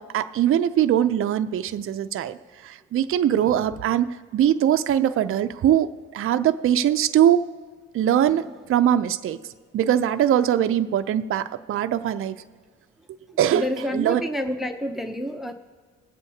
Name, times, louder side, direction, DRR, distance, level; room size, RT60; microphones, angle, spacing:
voice 1, 0.0-2.4 2.6-7.4 7.9-9.4 9.7-12.4 13.4-13.6 13.9-14.2, right 10 dB, 45° right, 9 dB, 0.4 m, -22 dB
voice 2, 13.5-15.5, equal, ahead, 7 dB, 0.6 m, -28 dB
20.0 x 7.9 x 2.8 m, 1.5 s
cardioid pair, 90°, 30 cm